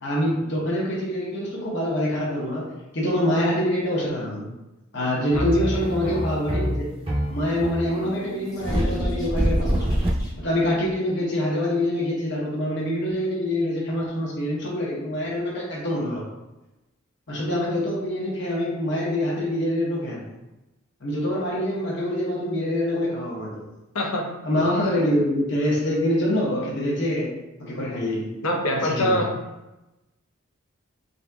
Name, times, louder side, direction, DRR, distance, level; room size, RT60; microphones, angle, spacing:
voice 1, 0.0-2.7 2.9-4.5 4.9-6.9 7.3-9.9 10.4-16.2 17.3-20.3 21.0-23.6 24.4-27.3 27.6-28.3 28.7-29.2, left 1 dB, 55° left, -5 dB, 0.9 m, -25 dB
sound 1, 5.3-10.9, equal, 25° right, 0.6 m, -25 dB
sound 2, 7.7-10.6, right 1 dB, 15° left, 0.7 m, -40 dB
voice 2, 23.9-24.3 28.4-29.3, left 1 dB, 85° left, 1 dB, 0.7 m, -24 dB
4.0 x 3.8 x 2.3 m, 1.0 s
head